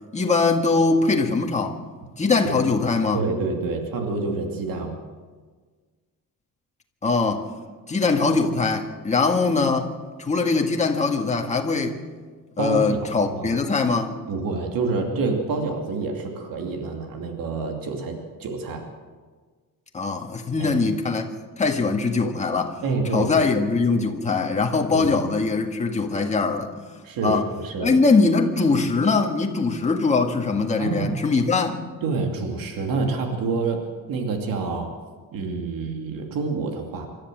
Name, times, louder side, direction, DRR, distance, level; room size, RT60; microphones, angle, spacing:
voice 1, 0.1-1.8 2.2-3.2 7.0-7.4 7.9-9.9 10.2-12.0 12.6-14.2 19.9-21.3 21.6-22.8 23.1-26.7 27.2-27.5 27.8-31.7, left 4 dB, 20° left, 3 dB, 1.9 m, -22 dB
voice 2, 3.1-5.0 12.6-13.6 14.3-18.8 20.6-20.7 22.8-23.5 24.9-25.1 27.0-28.0 30.8-31.2 32.0-33.8 34.1-34.9 35.3-37.1, right 4 dB, 80° right, 3 dB, 2.7 m, -27 dB
26.5 x 13.0 x 7.7 m, 1.5 s
cardioid pair, 165°, 33 cm